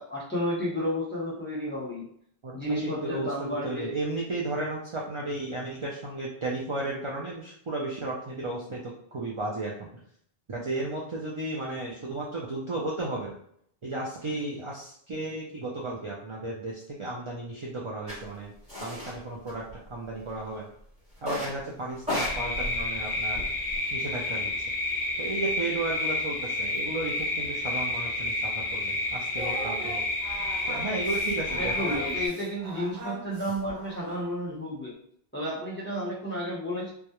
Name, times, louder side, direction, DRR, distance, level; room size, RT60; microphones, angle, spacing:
voice 1, 0.0-2.0 2.5-4.0 31.6-34.9 35.3-36.9, equal, 10° left, -8 dB, 0.8 m, -32 dB
voice 2, 2.4-9.9 10.5-13.4 13.8-18.5 18.8-20.7 21.2-23.5 23.9-24.5 25.2-30.0 30.7-32.0, right 2 dB, 50° right, -4 dB, 0.3 m, -34 dB
sound 1, 18.1-18.2 18.7-19.2 19.5-20.2 21.2-21.6 22.0-23.8, left 1 dB, 5° right, 1.1 m, -34 dB
sound 2, 22.1-32.3, left 2 dB, 45° left, 0.4 m, -30 dB
Singing, 29.3-34.4, right 1 dB, 80° right, 1.0 m, -40 dB
2.3 x 2.0 x 2.9 m, 0.66 s
omnidirectional pair, 1.1 m